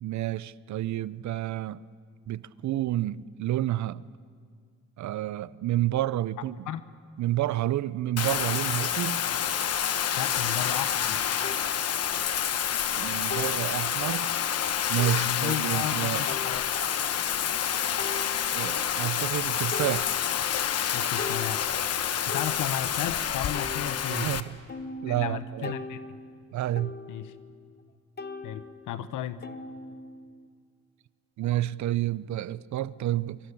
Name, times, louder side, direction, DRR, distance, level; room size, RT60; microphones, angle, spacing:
voice 1, 0.0-1.8 2.3-4.0 5.0-6.7 7.2-9.3 13.0-14.3 14.9-16.2 18.5-20.2 24.1-24.6 25.0-25.7 26.5-26.9 31.4-33.4, right 14 dB, 70° right, 0.7 m, -29 dB
Bathtub (filling or washing), 8.2-24.4, left 9 dB, 55° left, 1.1 m, -28 dB
voice 2, 10.2-11.2 15.1-16.7 20.9-21.7 22.2-24.4 25.1-26.0 27.1-27.3 28.4-29.4, left 10 dB, 85° left, 1.2 m, -34 dB
sound 1, 11.4-11.6 13.3-13.7 14.3-14.4 15.0-15.2 16.3-16.9 18.0-18.8 19.3-19.4 19.7-20.6 20.9-23.1 23.5-27.9 28.2-30.5, left 3 dB, 35° left, 1.3 m, -41 dB
24.5 x 24.5 x 8.6 m
cardioid pair, 90°, 30 cm